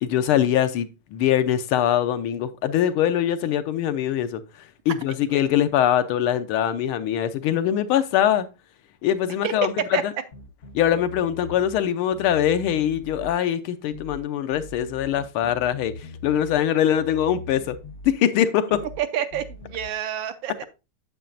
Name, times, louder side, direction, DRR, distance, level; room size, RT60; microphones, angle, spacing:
voice 1, 0.0-4.4 4.9-8.5 9.0-9.7 10.7-15.9 16.2-17.8 18.0-18.8, left 10 dB, 80° left, 1.6 m, -22 dB
sound 1, 10.3-11.8 12.1-13.4 13.9-14.2 14.5-16.6 16.9-18.2 18.7-19.0 19.3-19.9, left 2 dB, 50° left, 0.9 m, -41 dB
voice 2, 19.0-20.6, right 10 dB, 75° right, 1.3 m, -29 dB
9.0 x 7.4 x 2.5 m
omnidirectional pair, 2.4 m